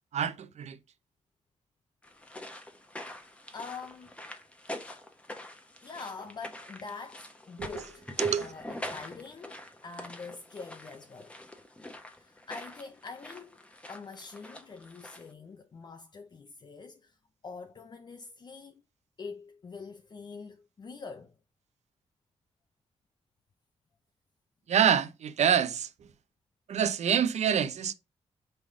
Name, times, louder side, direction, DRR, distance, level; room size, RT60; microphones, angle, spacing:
voice 1, 0.1-0.8 7.6-7.7 8.2-8.5 24.7-25.9 26.7-27.9, right 8 dB, 75° right, 0.7 m, -26 dB
sound 1, 2.0-15.3, left 1 dB, 10° left, 1.0 m, -44 dB
voice 2, 3.5-4.2 5.8-8.1 8.4-11.4 12.1-17.2 17.4-18.8 19.2-21.4, left 4 dB, 40° left, 0.6 m, -45 dB
5.3 x 4.1 x 4.7 m
wide cardioid pair, 140°, 12 cm